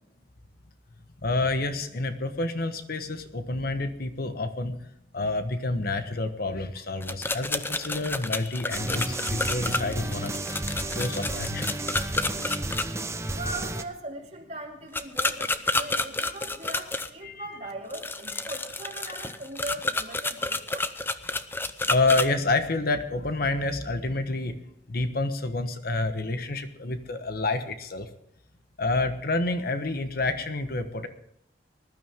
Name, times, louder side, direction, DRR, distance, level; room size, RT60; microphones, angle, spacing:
voice 1, 1.2-4.8 5.1-10.3 10.9-11.8 17.2-17.6 21.8-24.6 24.9-28.1 28.8-31.1, left 2 dB, 55° left, 9 dB, 1.2 m, -28 dB
sound 1, 7.0-12.8 14.9-17.1 17.9-22.3, left 2 dB, 10° left, 0.6 m, -30 dB
sound 2, 8.7-13.8, right 2 dB, 15° right, 0.9 m, -32 dB
voice 2, 13.3-20.9, right 2 dB, 40° right, 1 dB, 2.7 m, -39 dB
20.0 x 12.0 x 3.6 m, 0.74 s
head